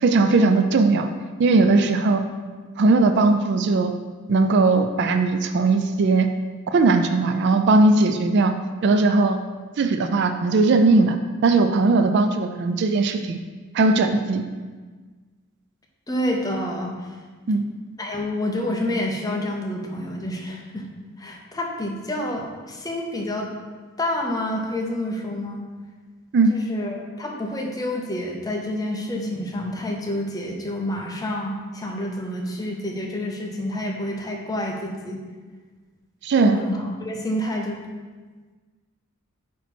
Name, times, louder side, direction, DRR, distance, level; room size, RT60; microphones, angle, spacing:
voice 1, 0.0-1.1 1.4-2.2 2.8-3.9 4.3-6.3 6.7-8.5 8.8-9.4 9.8-11.2 11.4-13.4 13.7-14.4 17.5-17.7 26.3-26.5 36.2-36.6, right 3 dB, 55° right, 8 dB, 0.4 m, -18 dB
voice 2, 16.1-16.9 18.0-20.9 21.2-23.5 24.0-25.6 26.5-35.2 36.4-37.8, left 1 dB, 20° left, 0 dB, 0.8 m, -28 dB
8.2 x 3.0 x 4.4 m, 1.4 s
head